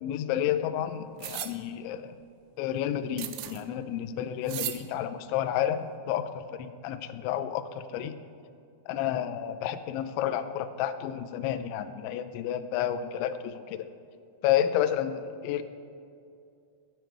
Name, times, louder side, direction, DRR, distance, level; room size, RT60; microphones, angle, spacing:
voice 1, 0.0-2.1 2.6-8.2 8.9-13.9 14.4-15.6, left 10 dB, 85° left, 8 dB, 2.6 m, -30 dB
sound 1, 1.2-1.5 3.2-3.6 4.5-4.8, right 14 dB, 85° right, 2.8 m, -35 dB
13.5 x 9.0 x 4.5 m, 2.5 s
omnidirectional pair, 5.9 m